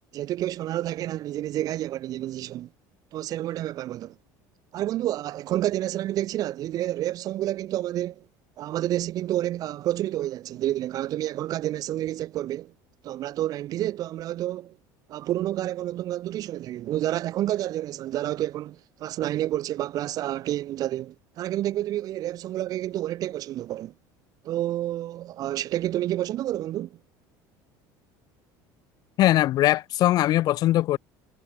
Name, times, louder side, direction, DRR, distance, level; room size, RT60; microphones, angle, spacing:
voice 1, 0.1-2.7 3.1-4.1 4.7-8.3 8.6-12.7 13.0-14.8 15.1-23.9 24.4-27.0, right 13 dB, 45° right, 2.8 m, -29 dB
voice 2, 29.2-31.0, left 14 dB, 50° left, 5.0 m, -21 dB
cardioid pair, 145°, 9 cm